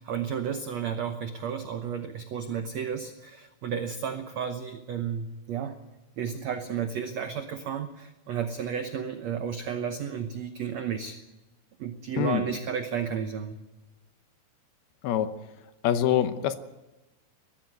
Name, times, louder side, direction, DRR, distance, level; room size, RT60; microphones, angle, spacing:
voice 1, 0.0-5.8 6.2-11.2 11.8-13.6, right 7 dB, 80° right, 1.5 m, -32 dB
voice 2, 12.1-12.5 15.0-15.4 15.8-16.6, left 10 dB, 75° left, 2.8 m, -25 dB
19.5 x 14.5 x 9.4 m
omnidirectional pair, 4.7 m